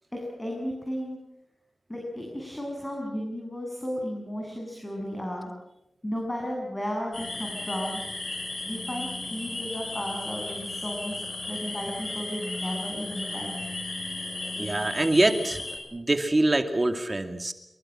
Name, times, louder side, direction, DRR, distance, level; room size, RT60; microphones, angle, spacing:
voice 1, 0.1-1.2 1.9-5.5 6.0-8.0 8.7-11.2 11.5-13.5, equal, 20° left, 0 dB, 7.7 m, -34 dB
sound 1, 7.1-15.8, left 2 dB, 55° left, 7.8 m, -35 dB
voice 2, 14.6-15.6 15.9-17.5, right 2 dB, 35° right, 7 dB, 2.4 m, -24 dB
25.5 x 23.0 x 7.6 m, 0.87 s
cardioid pair, 55°, 0 cm